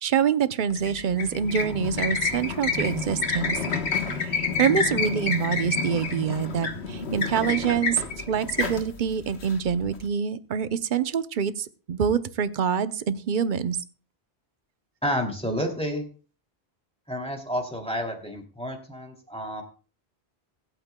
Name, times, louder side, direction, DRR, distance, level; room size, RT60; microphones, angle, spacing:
voice 1, 0.0-3.6 4.3-8.0 8.3-13.8, right 7 dB, 55° right, 12 dB, 0.8 m, -26 dB
sound 1, 0.7-10.0, left 4 dB, 85° left, 1.5 m, -29 dB
voice 2, 15.0-16.0 17.1-19.6, equal, 5° left, 1 dB, 2.5 m, -30 dB
24.0 x 8.9 x 2.2 m, 0.37 s
omnidirectional pair, 1.1 m